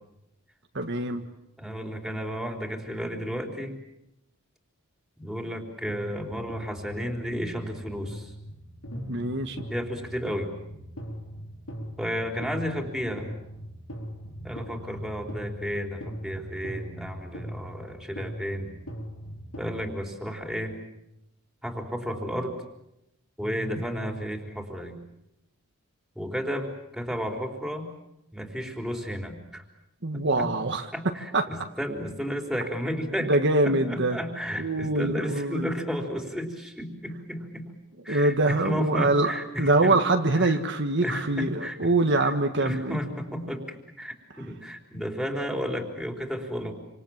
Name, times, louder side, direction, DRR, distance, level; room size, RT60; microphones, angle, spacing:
voice 1, 0.7-1.2 9.1-9.7 30.0-30.8 31.3-31.5 33.3-34.2 34.6-35.7 38.1-39.3 39.6-43.0, right 2 dB, 55° right, 5 dB, 1.6 m, -24 dB
voice 2, 1.6-3.8 5.2-8.3 9.7-10.5 12.0-13.3 14.4-18.7 19.6-20.8 21.6-22.6 23.4-25.0 26.2-27.9 28.3-29.6 30.1-30.5 30.9-33.3 33.6-37.7 38.0-40.0 40.3-40.6 41.0-42.3 42.6-46.7, equal, ahead, 3 dB, 4.0 m, -33 dB
sound 1, 5.9-19.9, equal, 75° left, 4.7 m, -40 dB
28.0 x 26.5 x 7.4 m, 0.85 s
head